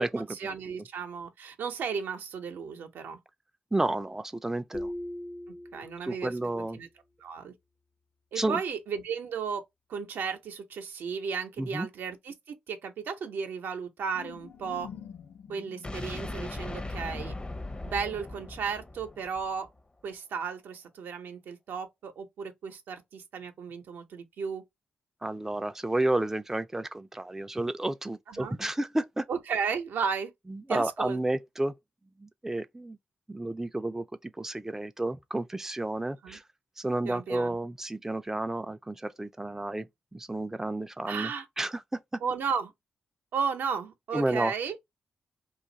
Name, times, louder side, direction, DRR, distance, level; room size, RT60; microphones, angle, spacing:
voice 1, 0.3-3.2 5.7-6.3 6.7-6.9 7.2-7.5 8.3-9.6 9.9-14.9 15.5-17.3 17.8-19.7 20.0-24.6 28.3-28.6 29.3-30.3 30.7-31.2 36.2-36.4 37.0-37.6 41.1-41.5 42.2-42.7 43.3-44.8, right 6 dB, 80° right, 0.6 m, -34 dB
voice 2, 3.7-4.9 6.0-6.8 8.4-8.6 11.6-11.9 25.2-29.3 30.5-31.7 32.2-33.0 33.3-36.4 36.8-39.9 40.1-41.3 41.6-42.0 44.1-44.5, right 2 dB, 10° right, 0.4 m, -31 dB
sound 1, 4.7-6.4, left 1 dB, 55° left, 1.0 m, -39 dB
sound 2, 14.1-18.7, left 8 dB, 70° left, 0.7 m, -49 dB
sound 3, 15.8-19.8, left 2 dB, 30° left, 0.7 m, -38 dB
2.5 x 2.4 x 3.8 m
supercardioid pair, 50°, 3 cm